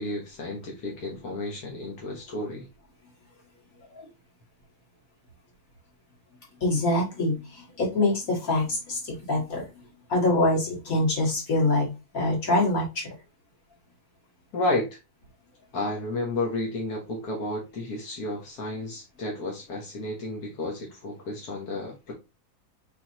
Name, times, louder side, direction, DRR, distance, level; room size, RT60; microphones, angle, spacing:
voice 1, 0.0-2.7 14.5-15.0 15.7-22.1, left 2 dB, 90° left, 0 dB, 1.7 m, -32 dB
voice 2, 6.6-11.9 12.1-13.1, left 2 dB, 65° left, -2 dB, 2.4 m, -25 dB
4.6 x 4.0 x 2.8 m, 0.25 s
omnidirectional pair, 1.6 m